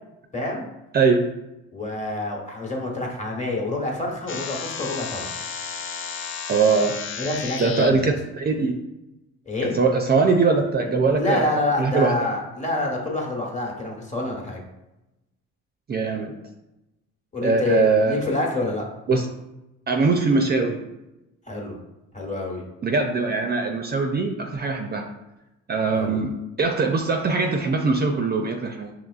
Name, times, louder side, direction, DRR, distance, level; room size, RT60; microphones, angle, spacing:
voice 1, 0.3-0.7 1.7-5.3 7.2-8.2 9.5-9.7 11.2-14.6 17.3-18.8 21.5-21.8 22.1-22.6 25.9-26.2, left 2 dB, 25° left, -1 dB, 1.1 m, -27 dB
voice 2, 0.9-1.3 6.5-7.0 7.6-8.8 9.7-11.5 11.8-12.2 15.9-16.3 17.4-18.2 19.1-19.3 19.9-20.8 22.8-25.1 25.7-28.9, right 4 dB, 35° right, 4 dB, 0.4 m, -21 dB
sound 1, 4.3-7.9, left 6 dB, 45° left, 0.5 m, -33 dB
5.4 x 3.0 x 2.4 m, 0.96 s
cardioid pair, 90°, 30 cm